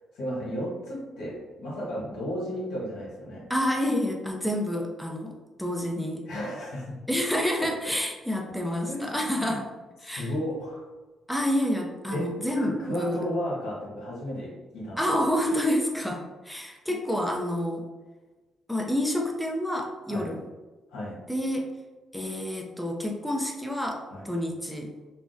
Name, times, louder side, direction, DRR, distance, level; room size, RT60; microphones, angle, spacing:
voice 1, 0.1-3.5 6.3-7.0 7.6-7.7 8.9-9.5 10.0-10.9 12.1-15.2 20.1-20.4 20.9-21.2 24.1-24.3, equal, 85° left, -5 dB, 1.2 m, -34 dB
voice 2, 3.5-6.3 7.1-9.7 10.0-10.3 11.3-13.2 15.0-17.9 18.7-20.4 21.3-21.7 22.1-24.9, equal, ahead, 0 dB, 0.4 m, -28 dB
3.5 x 2.1 x 2.5 m, 1.2 s
cardioid pair, 90°, 0 cm